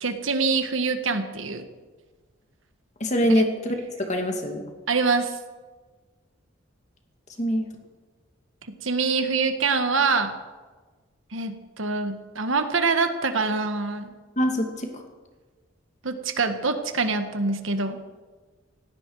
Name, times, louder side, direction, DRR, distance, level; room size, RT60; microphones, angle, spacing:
voice 1, 0.0-1.7 3.3-3.4 4.9-5.3 8.8-10.3 11.3-14.1 16.0-18.0, right 4 dB, 75° right, 8 dB, 1.6 m, -25 dB
voice 2, 3.0-3.8 4.1-4.6 7.4-7.7 14.4-14.9, equal, 35° left, 4 dB, 2.3 m, -23 dB
18.5 x 16.5 x 4.8 m, 1.3 s
head